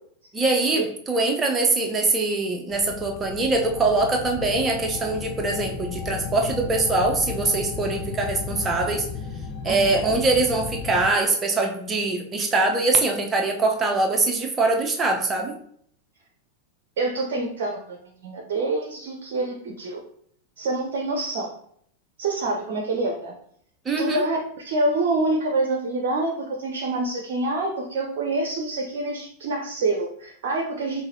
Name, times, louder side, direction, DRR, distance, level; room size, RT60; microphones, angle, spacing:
voice 1, 0.3-9.1 9.6-15.6 23.8-24.2, right 3 dB, 20° right, 2 dB, 0.8 m, -23 dB
sound 1, 2.7-11.1, left 6 dB, 45° left, 0.5 m, -34 dB
voice 2, 9.6-10.1 17.0-18.0 18.2-20.0 20.6-21.5 22.2-23.3 24.0-31.0, right 2 dB, 55° right, 1 dB, 0.7 m, -26 dB
5.6 x 2.7 x 2.7 m, 0.65 s
figure-of-eight pair, 90°, 0 cm